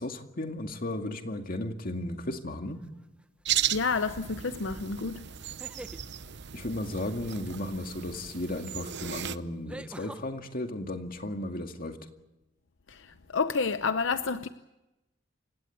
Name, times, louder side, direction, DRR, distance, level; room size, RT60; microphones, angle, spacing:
voice 1, 0.0-2.8 6.5-12.0, left 1 dB, 50° left, 2.2 m, -35 dB
sound 1, 2.8-3.2 5.4-6.0 8.3-8.4 9.7-10.2, right 1 dB, 5° right, 0.8 m, -44 dB
sound 2, 3.4-9.4, right 10 dB, 60° right, 0.8 m, -35 dB
voice 2, 3.7-5.2 13.3-14.5, left 4 dB, 75° left, 0.8 m, -29 dB
28.5 x 17.0 x 8.6 m
head